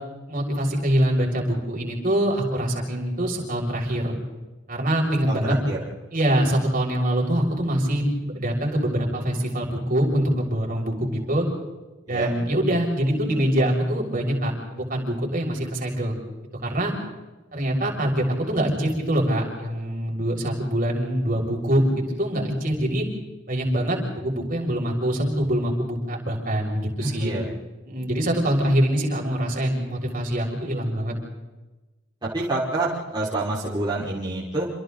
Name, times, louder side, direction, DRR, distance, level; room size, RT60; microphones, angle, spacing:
voice 1, 0.3-4.2 4.7-5.6 6.1-11.5 12.1-16.2 16.6-16.9 17.5-23.0 23.5-27.3 27.8-31.1, right 1 dB, 45° right, 0 dB, 6.6 m, -24 dB
voice 2, 5.3-5.8 12.1-12.3 27.0-27.5 32.2-34.7, right 2 dB, 20° right, -7 dB, 5.2 m, -27 dB
28.5 x 28.0 x 4.0 m, 1.1 s
head